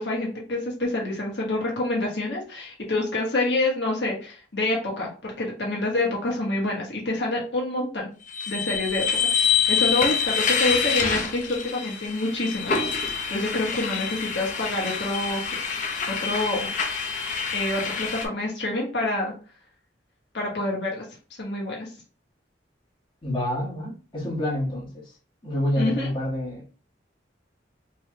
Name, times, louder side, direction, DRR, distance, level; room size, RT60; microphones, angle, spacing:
voice 1, 0.0-8.0 8.5-9.0 9.3-15.6 16.1-16.7 17.5-19.3 20.3-21.0 21.4-21.9 25.8-26.1, left 2 dB, 65° left, -2 dB, 1.3 m, -27 dB
sound 1, 8.3-18.3, left 6 dB, 40° left, 0.7 m, -26 dB
voice 2, 23.2-25.0 25.4-26.6, left 1 dB, 25° left, -6 dB, 1.6 m, -28 dB
4.5 x 3.3 x 2.2 m, 0.37 s
head